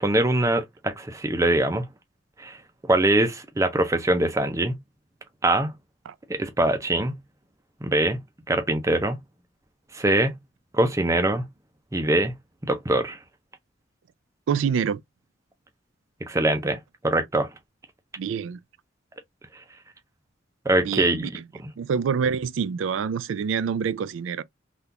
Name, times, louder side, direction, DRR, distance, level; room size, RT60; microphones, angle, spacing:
voice 1, 0.0-1.9 2.4-2.6 2.8-4.8 5.4-5.7 6.3-7.2 7.8-8.2 8.5-9.2 9.9-10.4 10.7-11.5 11.9-12.3 12.6-13.2 16.3-17.5 20.7-21.3, right 1 dB, 15° right, 0.6 m, -23 dB
voice 2, 14.5-15.0 18.2-18.6 20.8-21.4 21.8-24.4, right 6 dB, 85° right, 0.4 m, -26 dB
3.6 x 2.4 x 2.7 m
head